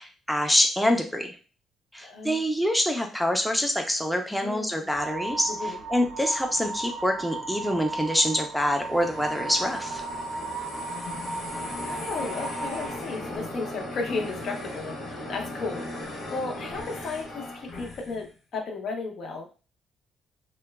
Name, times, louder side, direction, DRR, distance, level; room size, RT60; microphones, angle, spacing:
voice 1, 0.0-1.3 1.9-10.0, equal, ahead, 3 dB, 0.5 m, -26 dB
voice 2, 2.0-2.4 4.4-4.9 5.5-5.8 11.8-18.3 18.5-19.5, left 4 dB, 65° left, 2 dB, 0.6 m, -34 dB
sound 1, 4.9-13.0, right 3 dB, 80° right, 0.4 m, -35 dB
sound 2, 8.5-18.3, left 1 dB, 80° left, 1.1 m, -38 dB
2.8 x 2.1 x 2.3 m, 0.34 s
cardioid pair, 90°, 0 cm